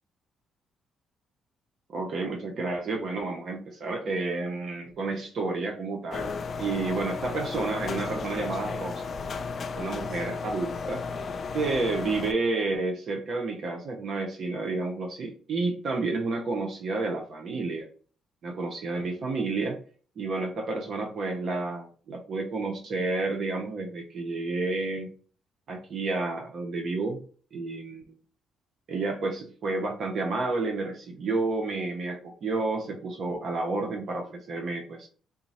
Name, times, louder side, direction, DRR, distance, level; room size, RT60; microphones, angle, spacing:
voice 1, 1.9-9.0 9.7-11.0 11.5-17.9 18.4-19.8 20.2-25.1 25.7-27.2 27.5-28.0 28.9-35.1, right 3 dB, 60° right, 2 dB, 0.6 m, -30 dB
sound 1, 6.1-12.3, left 4 dB, 50° left, 0.4 m, -34 dB
3.6 x 2.0 x 4.0 m, 0.42 s
cardioid pair, 90°, 0 cm